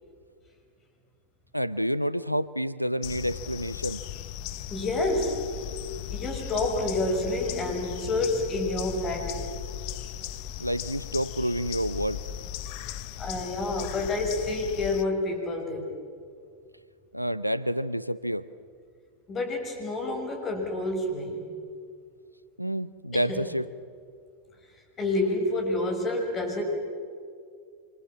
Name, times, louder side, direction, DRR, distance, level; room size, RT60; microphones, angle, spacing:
voice 1, 1.5-4.0 10.6-12.2 17.1-18.5 22.6-23.7, equal, 90° right, 16 dB, 0.7 m, -29 dB
sound 1, 3.0-15.0, left 11 dB, 45° left, 0.9 m, -37 dB
voice 2, 4.7-5.5 6.1-9.4 13.2-15.9 19.3-21.4 23.1-23.4 25.0-26.6, left 2 dB, 25° left, 3 dB, 6.0 m, -28 dB
27.5 x 26.0 x 7.4 m, 2.2 s
figure-of-eight pair, 90°, 0 cm